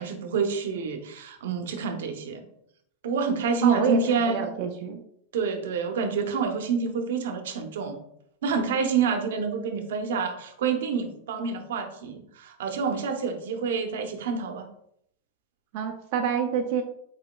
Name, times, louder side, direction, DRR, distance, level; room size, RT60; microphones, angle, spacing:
voice 1, 0.0-2.4 3.0-4.5 5.3-8.0 8.4-14.7, right 5 dB, 75° right, 6 dB, 0.7 m, -28 dB
voice 2, 3.6-5.0 15.7-16.8, right 7 dB, 40° right, 2 dB, 0.4 m, -27 dB
4.9 x 4.0 x 2.2 m, 0.72 s
supercardioid pair, 175°, 0 cm